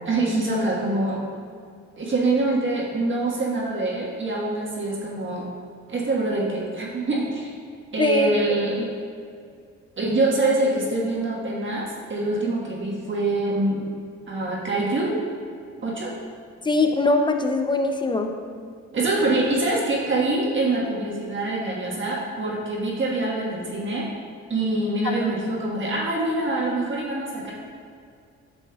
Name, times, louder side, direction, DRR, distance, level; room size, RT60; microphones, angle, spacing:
voice 1, 0.1-1.2 2.0-5.5 5.9-7.5 7.9-8.9 10.0-13.9 14.3-15.2 15.8-16.1 18.9-24.1 24.5-27.5, right 2 dB, 40° right, -4 dB, 1.4 m, -25 dB
voice 2, 8.0-8.3 16.6-18.4 25.0-25.1, left 2 dB, 15° left, 5 dB, 0.5 m, -21 dB
8.6 x 6.0 x 2.3 m, 2.2 s
cardioid pair, 90°, 30 cm